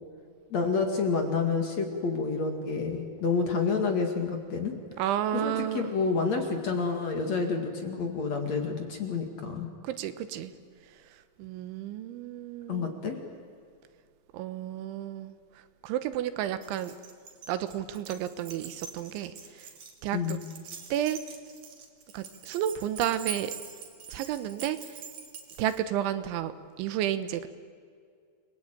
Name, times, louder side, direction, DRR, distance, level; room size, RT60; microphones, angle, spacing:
voice 1, 0.5-4.7 5.3-9.7 12.7-13.2 20.1-20.4, left 4 dB, 45° left, 4 dB, 2.7 m, -29 dB
voice 2, 5.0-5.8 9.8-10.5 11.4-12.9 14.3-15.4 15.8-16.9 17.5-19.3 20.0-20.4 20.9-21.2 22.1-23.5 24.1-24.8 25.6-26.5 26.8-27.5, right 11 dB, 90° right, 12 dB, 3.5 m, -31 dB
Keys jangling, 16.6-25.8, right 6 dB, 50° right, 3.5 m, -44 dB
29.0 x 21.5 x 9.0 m, 2.1 s
omnidirectional pair, 5.2 m